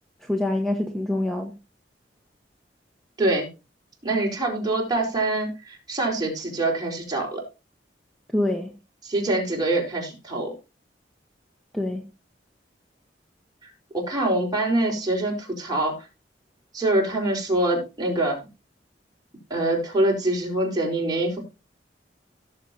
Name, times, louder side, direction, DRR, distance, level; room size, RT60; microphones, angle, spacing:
voice 1, 0.2-1.5 8.3-8.7 11.7-12.0, left 1 dB, ahead, 1.2 m, -25 dB
voice 2, 4.0-7.4 9.0-10.5 13.6-15.9 16.7-18.4 19.5-21.4, right 2 dB, 25° right, 4.4 m, -25 dB
17.0 x 7.2 x 2.8 m
head